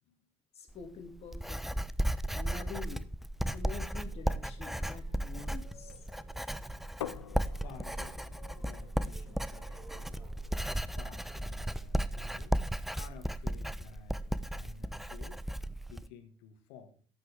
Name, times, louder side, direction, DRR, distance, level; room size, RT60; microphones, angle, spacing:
voice 1, 0.5-1.9 2.3-3.1 3.5-6.0, left 5 dB, 45° left, 5 dB, 2.5 m, -46 dB
Writing, 0.7-16.1, right 1 dB, ahead, 0.6 m, -35 dB
Boat Water vehicle, 3.8-12.6, right 1 dB, 15° right, 3.5 m, -57 dB
sound 1, 7.0-12.7, left 10 dB, 90° left, 0.5 m, -49 dB
voice 2, 7.5-8.2 8.5-12.6 12.9-15.5 15.8-17.1, left 6 dB, 70° left, 8 dB, 1.8 m, -53 dB
12.5 x 9.0 x 3.5 m, 0.39 s
hypercardioid pair, 60°, 15 cm